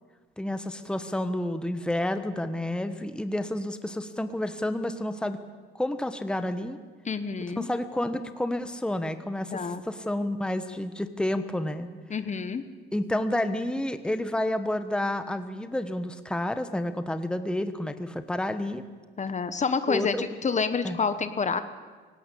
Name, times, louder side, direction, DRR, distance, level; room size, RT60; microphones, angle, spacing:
voice 1, 0.4-5.4 5.7-6.8 7.6-11.9 12.9-18.8 19.9-20.2 20.8-21.0, left 1 dB, 5° left, 10 dB, 1.2 m, -30 dB
voice 2, 7.0-7.7 9.5-9.8 12.1-12.6 19.2-21.6, left 5 dB, 35° left, 11 dB, 1.2 m, -28 dB
18.0 x 17.0 x 8.5 m, 1.5 s
cardioid pair, 90°, 20 cm